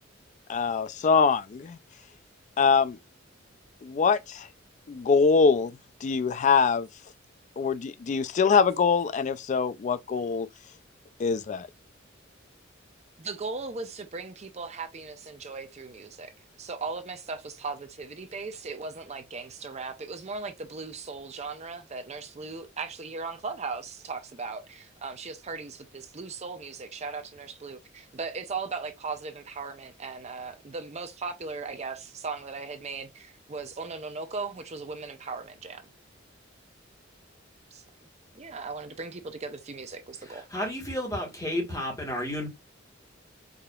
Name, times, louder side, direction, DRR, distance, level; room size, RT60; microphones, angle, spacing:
voice 1, 0.5-1.8 2.6-3.0 3.8-4.5 4.9-6.9 7.6-10.5 11.2-11.7, left 5 dB, 40° left, 0.3 m, -23 dB
voice 2, 13.2-16.3 16.6-35.8 37.7-37.8 38.3-40.5, right 4 dB, 35° right, 0.6 m, -38 dB
voice 3, 40.3-42.5, left 1 dB, 15° left, 1.5 m, -32 dB
4.9 x 2.8 x 2.3 m
head